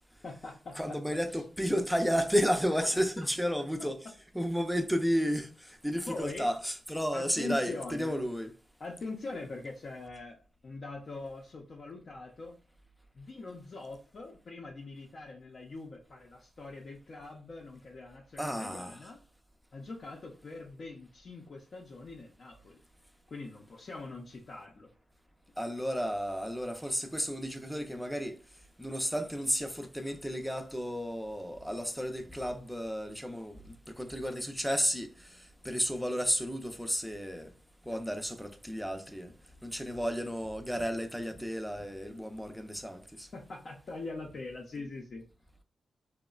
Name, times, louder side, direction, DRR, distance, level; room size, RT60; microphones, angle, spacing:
voice 1, 0.2-1.0 1.3-1.4 3.8-3.9 6.1-6.5 7.1-8.2 8.8-10.4 10.6-12.6 13.1-19.2 19.7-22.8 23.3-24.9 43.3-45.2, left 3 dB, 60° left, 0.5 m, -43 dB
voice 2, 0.8-4.0 4.3-8.5 18.4-19.0 25.6-28.4 28.8-37.5 37.9-39.3 39.6-43.3, equal, ahead, 0.4 m, -32 dB
2.9 x 2.1 x 2.3 m
cardioid pair, 65°, 0 cm